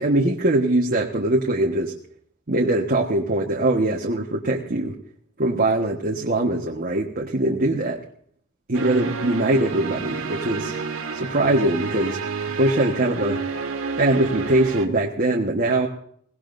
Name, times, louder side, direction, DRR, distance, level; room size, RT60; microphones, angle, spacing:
voice 1, 0.0-1.9 2.5-4.9 5.4-8.0 8.7-10.8 11.1-12.2 12.6-13.4 14.0-15.9, right 1 dB, 45° right, -1 dB, 1.4 m, -22 dB
sound 1, 8.7-14.9, right 4 dB, 75° right, 1.7 m, -29 dB
22.0 x 18.0 x 2.6 m, 0.63 s
head